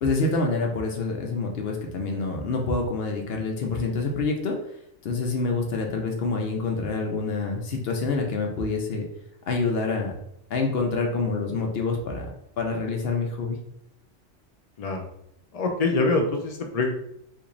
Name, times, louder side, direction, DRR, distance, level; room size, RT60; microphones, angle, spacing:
voice 1, 0.0-4.5 5.0-9.0 9.5-10.1 10.5-12.3 12.6-13.6, left 3 dB, 65° left, 1 dB, 0.7 m, -27 dB
voice 2, 15.5-16.9, left 3 dB, 80° left, 2 dB, 0.3 m, -24 dB
3.0 x 2.5 x 3.7 m, 0.76 s
omnidirectional pair, 1.2 m